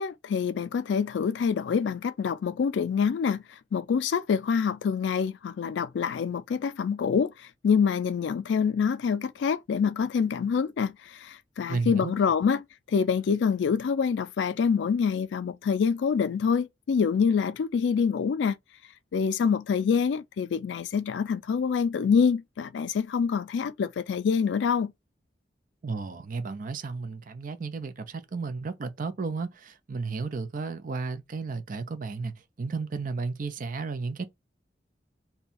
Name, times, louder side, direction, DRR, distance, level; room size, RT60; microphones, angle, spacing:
voice 1, 0.0-18.6 19.1-24.9, left 6 dB, 80° left, 0.3 m, -26 dB
voice 2, 11.7-12.1 25.8-34.2, right 4 dB, 50° right, 0.5 m, -33 dB
2.7 x 2.3 x 4.1 m
head